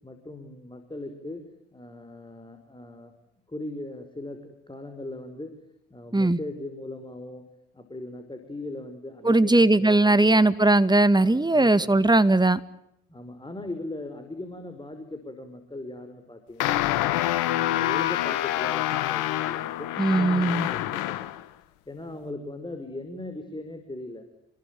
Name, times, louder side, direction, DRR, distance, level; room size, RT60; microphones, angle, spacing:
voice 1, 0.0-1.4 1.7-3.1 3.5-5.5 5.9-7.4 7.7-10.5 11.2-12.2 13.1-17.0 17.4-21.4 21.9-24.2, left 2 dB, 15° left, 7 dB, 5.6 m, -39 dB
voice 2, 9.2-12.6 20.0-20.7, right 2 dB, 15° right, 12 dB, 2.1 m, -19 dB
sound 1, 16.6-21.4, left 14 dB, 75° left, 1.5 m, -26 dB
29.0 x 22.0 x 9.3 m, 0.79 s
hypercardioid pair, 50°, 31 cm